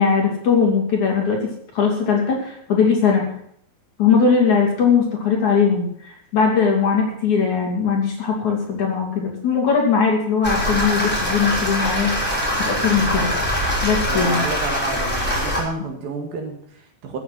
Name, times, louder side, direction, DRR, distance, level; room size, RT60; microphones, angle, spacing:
voice 1, 0.0-1.4 1.8-3.2 4.0-12.1 12.6-13.3 13.8-14.5, left 6 dB, 45° left, 0 dB, 3.8 m, -19 dB
sound 1, 10.4-15.6, equal, ahead, 4.7 m, -23 dB
voice 2, 14.1-17.2, right 4 dB, 60° right, 3 dB, 3.4 m, -30 dB
14.5 x 8.6 x 7.7 m, 0.66 s
omnidirectional pair, 5.1 m